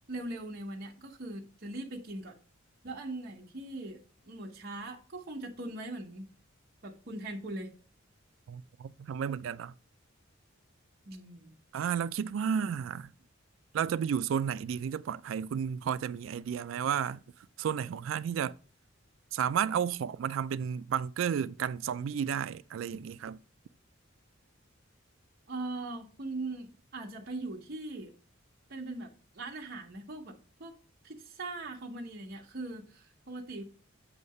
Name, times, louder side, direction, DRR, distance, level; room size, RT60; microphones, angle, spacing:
voice 1, 0.1-2.4 2.8-4.0 4.2-6.2 6.8-7.7 11.1-11.5 25.5-28.1 28.7-30.8 31.0-33.6, right 2 dB, 50° right, 1.0 m, -40 dB
voice 2, 8.5-9.7 11.7-13.1 13.7-17.2 17.6-18.5 19.3-23.4, right 8 dB, 70° right, 0.3 m, -32 dB
7.9 x 2.8 x 5.3 m
head